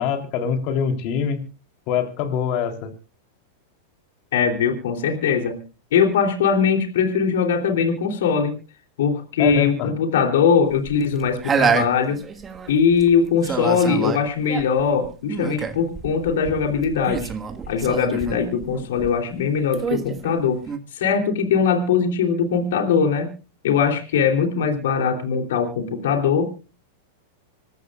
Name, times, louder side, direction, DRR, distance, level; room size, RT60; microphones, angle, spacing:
voice 1, 0.0-1.4 1.9-2.9 9.4-9.9, left 7 dB, 50° left, 5 dB, 3.4 m, -24 dB
voice 2, 4.3-5.6 5.9-8.5 9.0-12.2 12.7-17.3 17.7-20.6 20.9-23.3 23.6-26.4, left 6 dB, 75° left, 4 dB, 3.1 m, -21 dB
sound 1, 10.7-13.1 13.4-19.4 19.7-20.8, right 6 dB, 25° right, 1.5 m, -27 dB
26.5 x 13.5 x 2.4 m, 0.33 s
hypercardioid pair, 110°, 0 cm